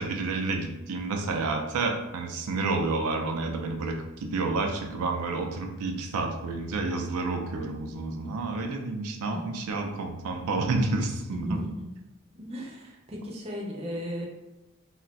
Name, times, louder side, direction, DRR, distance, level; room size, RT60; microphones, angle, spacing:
voice 1, 0.0-11.6, right 3 dB, 85° right, 3 dB, 0.4 m, -30 dB
voice 2, 11.3-11.9 12.5-14.3, equal, 30° right, -1 dB, 0.5 m, -36 dB
2.3 x 2.2 x 3.9 m, 0.97 s
head